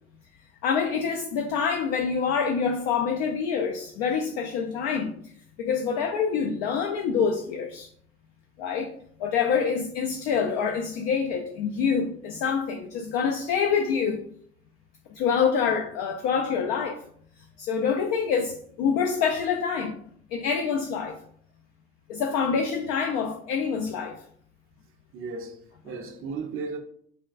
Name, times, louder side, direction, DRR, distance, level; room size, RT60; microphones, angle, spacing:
voice 1, 0.6-5.1 5.6-7.9 8.6-8.9 9.2-14.2 15.1-17.0 17.6-20.0 20.3-21.2 22.1-24.2, left 6 dB, 60° left, 0.4 m, -26 dB
voice 2, 25.1-26.8, right 4 dB, 45° right, 0.5 m, -35 dB
3.3 x 2.2 x 2.4 m
hypercardioid pair, 60°, 31 cm